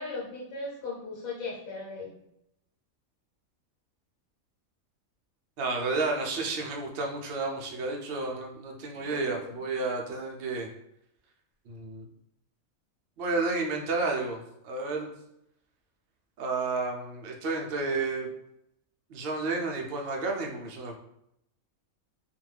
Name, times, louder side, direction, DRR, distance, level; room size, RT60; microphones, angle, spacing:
voice 1, 0.0-2.1 9.1-9.5, left 3 dB, 80° left, -5 dB, 1.2 m, -37 dB
voice 2, 5.6-10.7 11.7-12.1 13.2-15.1 16.4-18.3 19.1-21.0, right 3 dB, 65° right, 1 dB, 0.5 m, -31 dB
2.5 x 2.2 x 3.2 m, 0.79 s
omnidirectional pair, 1.4 m